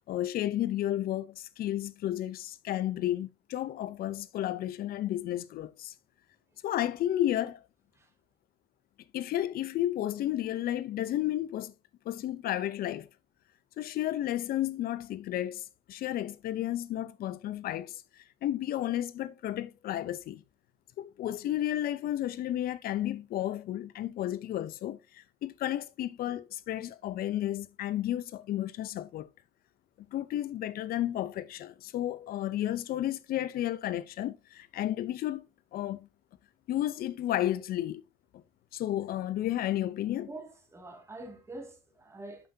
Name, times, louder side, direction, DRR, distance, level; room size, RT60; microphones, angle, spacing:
voice 1, 0.1-5.9 6.6-7.6 9.1-11.7 12.1-13.1 13.8-20.4 21.0-29.3 30.1-36.1 36.7-38.0 38.3-38.4 38.7-40.3, left 13 dB, 60° left, 0.6 m, -32 dB
voice 2, 40.2-42.5, right 2 dB, 15° right, 2.2 m, -45 dB
9.1 x 5.6 x 2.7 m
cardioid pair, 110°, 17 cm